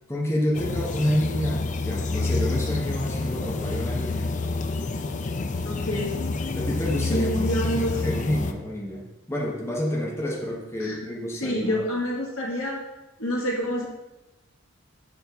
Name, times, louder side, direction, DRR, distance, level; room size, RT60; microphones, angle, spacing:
voice 1, 0.1-4.3 6.5-11.8, equal, 15° left, -3 dB, 0.9 m, -29 dB
sound 1, 0.5-8.5, left 3 dB, 35° left, 0.4 m, -28 dB
voice 2, 5.6-6.3 7.1-8.0 10.8-11.0 11.4-12.8 13.2-13.9, equal, 85° left, -2 dB, 1.8 m, -27 dB
6.9 x 5.5 x 3.5 m, 0.99 s
head